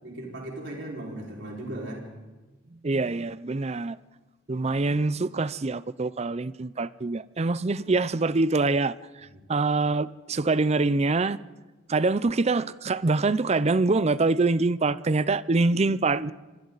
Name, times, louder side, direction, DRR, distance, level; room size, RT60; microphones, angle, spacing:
voice 1, 0.0-2.1 9.3-9.4, right 1 dB, 65° right, 5.1 m, -37 dB
voice 2, 2.8-4.0 4.5-8.9 9.5-11.4 11.9-16.3, right 3 dB, 35° right, 0.5 m, -24 dB
28.0 x 24.5 x 4.1 m
head